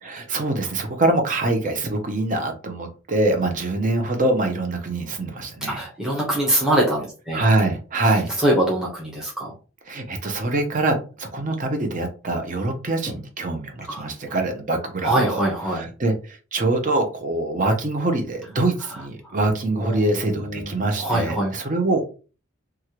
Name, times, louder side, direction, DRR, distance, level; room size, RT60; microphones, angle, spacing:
voice 1, 0.0-5.8 7.3-8.3 9.9-15.4 15.7-22.0, right 2 dB, 40° right, 5 dB, 0.6 m, -24 dB
voice 2, 5.6-7.4 8.4-9.5 13.9-14.1 15.0-15.9 19.2-19.3 19.8-20.1 20.4-21.5, right 1 dB, 5° right, -3 dB, 0.8 m, -23 dB
3.1 x 2.4 x 2.9 m, 0.35 s
head